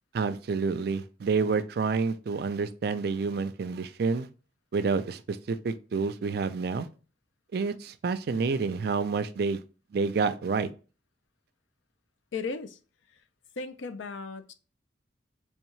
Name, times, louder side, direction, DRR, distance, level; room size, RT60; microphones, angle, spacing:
voice 1, 0.1-4.3 4.7-6.9 7.5-9.6 9.9-10.7, right 4 dB, 55° right, 0.3 m, -28 dB
voice 2, 12.3-12.8 13.6-14.5, left 4 dB, 80° left, 0.5 m, -36 dB
3.6 x 3.4 x 3.1 m
head